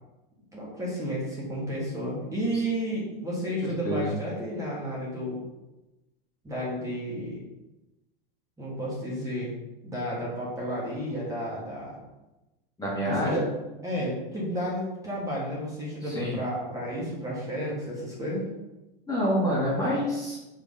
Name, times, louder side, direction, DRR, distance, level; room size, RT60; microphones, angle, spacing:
voice 1, 0.5-5.4 6.4-7.4 8.6-9.6 9.8-12.0 13.1-13.4 13.8-18.4, equal, 10° right, -6 dB, 2.1 m, -32 dB
voice 2, 12.8-13.5 16.0-16.4 19.1-20.6, equal, 10° left, -7 dB, 2.0 m, -27 dB
5.0 x 4.5 x 5.6 m, 1.0 s
supercardioid pair, 140°, 29 cm